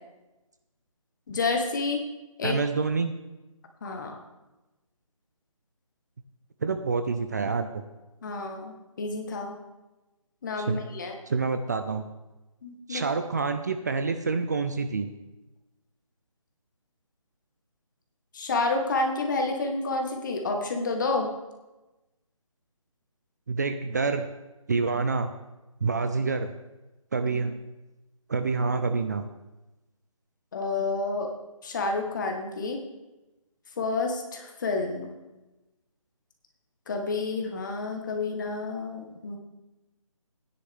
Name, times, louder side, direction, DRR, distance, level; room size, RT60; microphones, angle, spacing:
voice 1, 1.3-2.0 2.4-2.6 3.8-4.2 8.2-9.5 10.4-11.2 12.6-13.0 18.3-21.3 30.5-31.3 31.6-32.8 33.8-35.1 36.9-39.4, left 3 dB, 35° left, 3 dB, 1.6 m, -29 dB
voice 2, 2.4-3.1 6.6-7.8 10.6-10.8 11.3-12.1 12.9-15.1 23.5-24.3 24.7-25.3 25.8-26.5 27.1-27.6 28.3-29.2, right 4 dB, 30° right, 8 dB, 0.5 m, -27 dB
16.0 x 10.0 x 3.6 m, 1.1 s
figure-of-eight pair, 160°, 18 cm